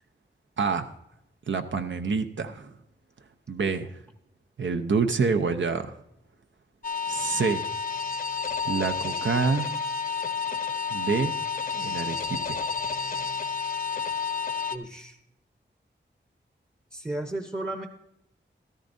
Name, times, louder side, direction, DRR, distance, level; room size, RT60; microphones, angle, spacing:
voice 1, 0.6-0.9 1.5-2.7 3.5-4.0 4.6-5.9 7.1-7.6 8.6-9.7 10.9-11.3 11.7-12.6, right 5 dB, 75° right, 7 dB, 0.7 m, -27 dB
sound 1, 6.8-14.8, left 5 dB, 45° left, 0.7 m, -30 dB
voice 2, 14.7-15.2 16.9-17.9, right 1 dB, 15° right, 6 dB, 0.8 m, -34 dB
14.0 x 13.0 x 2.7 m, 0.78 s
wide cardioid pair, 95°, 20 cm